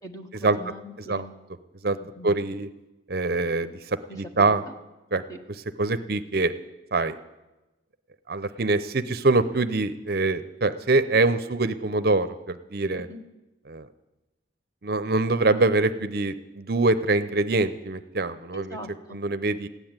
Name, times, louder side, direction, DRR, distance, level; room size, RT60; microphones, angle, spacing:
voice 1, 0.0-1.4 2.0-2.4 4.1-4.7 5.3-5.4 13.1-13.2 18.5-19.2, right 1 dB, 20° left, 4 dB, 1.4 m, -41 dB
voice 2, 2.2-2.7 3.1-4.6 5.1-5.2 5.8-6.5 6.9-7.1 8.3-13.1 13.7-13.9 14.8-18.8 19.1-19.7, right 3 dB, 55° right, 11 dB, 0.7 m, -24 dB
15.5 x 10.0 x 8.9 m, 1.0 s
head